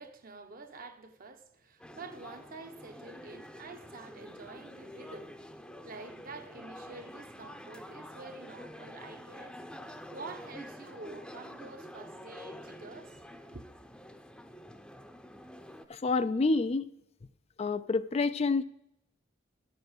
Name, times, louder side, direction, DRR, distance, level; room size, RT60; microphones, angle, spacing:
voice 1, 0.0-5.4 5.8-9.6 10.1-13.2 13.5-13.6, right 3 dB, 50° right, 1.0 m, -48 dB
sound 1, 1.8-15.8, equal, 5° left, 0.7 m, -48 dB
voice 2, 15.9-16.8 17.6-18.6, left 3 dB, 35° left, 0.4 m, -28 dB
11.0 x 6.9 x 7.9 m
head